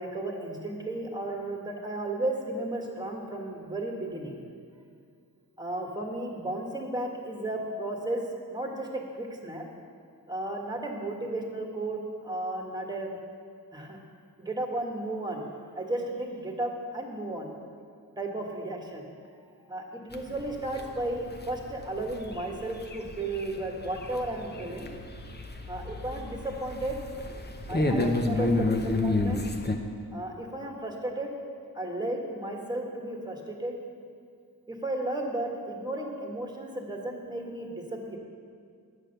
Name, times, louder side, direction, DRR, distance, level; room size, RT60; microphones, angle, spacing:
voice 1, 0.0-4.4 5.6-8.2 8.5-9.6 10.3-13.2 13.7-14.0 14.4-15.5 15.7-17.5 18.2-19.1 19.7-24.9 25.7-27.0 27.7-29.4 30.1-31.3 31.7-33.7 34.7-38.2, right 1 dB, 10° right, 1 dB, 1.5 m, -34 dB
sound 1, 20.1-29.8, left 2 dB, 25° left, 0.8 m, -31 dB
9.1 x 6.5 x 6.6 m, 2.2 s
wide cardioid pair, 75°, 37 cm